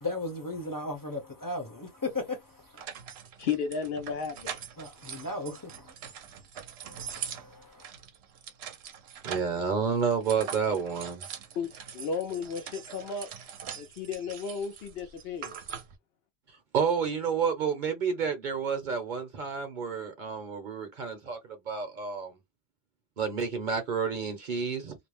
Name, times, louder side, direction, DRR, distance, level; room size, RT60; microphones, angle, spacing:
voice 1, 0.0-2.4 4.8-5.6 6.9-7.0, left 2 dB, 25° left, 0.7 m, -35 dB
sound 1, 2.1-2.2 2.8-9.6 10.0-16.0, right 8 dB, 85° right, 0.8 m, -43 dB
voice 2, 3.4-4.5 11.6-13.3 13.8-15.5, left 6 dB, 70° left, 0.8 m, -33 dB
voice 3, 9.2-11.2 16.7-21.4 21.7-22.3 23.2-25.0, right 6 dB, 55° right, 0.8 m, -30 dB
2.5 x 2.0 x 3.1 m
omnidirectional pair, 1.1 m